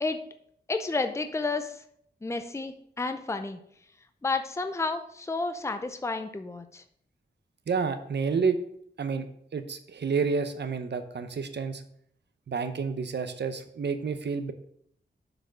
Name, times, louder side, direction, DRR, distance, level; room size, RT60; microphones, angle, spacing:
voice 1, 0.7-1.7 2.2-3.6 4.2-6.8, left 3 dB, 15° left, 8 dB, 0.6 m, -31 dB
voice 2, 7.7-8.6 9.0-9.3 9.5-11.8 12.5-14.5, right 5 dB, 75° right, 10 dB, 0.8 m, -29 dB
6.6 x 4.7 x 6.1 m, 0.68 s
wide cardioid pair, 110°, 18 cm